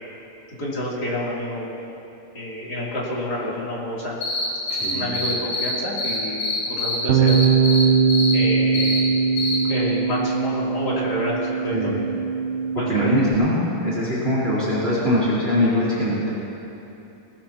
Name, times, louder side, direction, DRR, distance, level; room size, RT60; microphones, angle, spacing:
voice 1, 0.5-1.8 2.3-4.2 4.9-7.4 8.3-9.0 9.7-11.4 11.6-12.0 12.7-13.1, left 1 dB, 30° left, -7 dB, 3.6 m, -28 dB
sound 1, 4.2-5.7 6.0-7.0 7.3-7.8 8.1-8.3 8.7-9.0 9.4-9.5, left 2 dB, 60° left, 4.9 m, -25 dB
voice 2, 4.7-5.2 11.7-12.0 12.7-16.3, equal, 20° right, -8 dB, 3.4 m, -22 dB
Bass guitar, 7.1-13.3, right 5 dB, 85° right, 2.6 m, -21 dB
19.5 x 19.5 x 3.0 m, 3.0 s
omnidirectional pair, 3.8 m